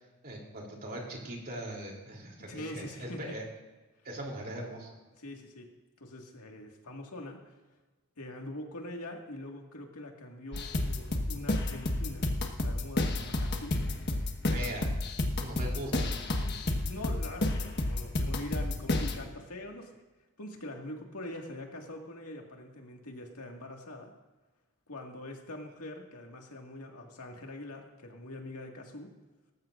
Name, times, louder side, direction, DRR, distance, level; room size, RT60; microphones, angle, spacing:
voice 1, 0.2-3.5 4.0-5.0 14.5-14.9 15.4-16.1, right 1 dB, 45° right, -1 dB, 3.2 m, -40 dB
voice 2, 2.5-3.2 5.2-5.7 6.0-7.5 8.2-13.8 14.5-14.8 16.1-20.0 20.4-24.1 24.9-29.1, left 1 dB, 85° left, 1 dB, 2.0 m, -44 dB
sound 1, 10.5-19.2, left 1 dB, 55° left, 1.3 m, -31 dB
18.5 x 15.0 x 2.6 m, 1.2 s
head